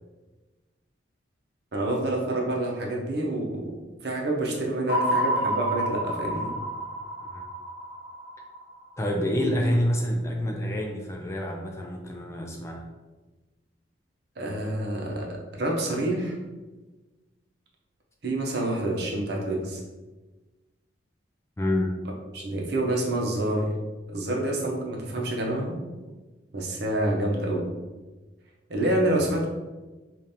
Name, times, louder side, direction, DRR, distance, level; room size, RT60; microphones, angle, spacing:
voice 1, 1.7-3.7 4.0-6.5 14.4-16.4 18.2-19.8 22.3-23.7 24.1-25.8 26.5-27.7 28.7-29.5, right 1 dB, 60° right, -1 dB, 0.7 m, -27 dB
sound 1, 4.9-9.1, equal, 85° left, 0.5 m, -29 dB
voice 2, 9.0-12.8 21.6-21.9, equal, 15° left, 1 dB, 0.3 m, -27 dB
5.1 x 2.5 x 2.7 m, 1.2 s
head